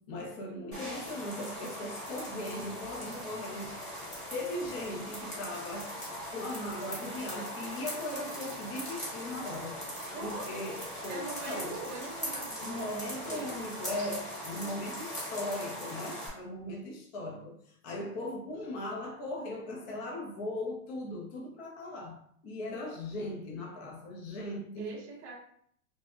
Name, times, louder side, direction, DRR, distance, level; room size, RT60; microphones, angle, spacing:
voice 1, 0.0-3.8 4.3-6.0 6.3-9.9 10.2-11.8 12.6-25.0, left 1 dB, 45° left, 0.7 m, -38 dB
sound 1, 0.7-16.3, equal, 15° left, 1.1 m, -40 dB
voice 2, 10.1-10.5 11.1-13.6 24.8-25.3, right 3 dB, 30° right, 0.6 m, -42 dB
3.3 x 2.1 x 2.5 m
hypercardioid pair, 135°, 46 cm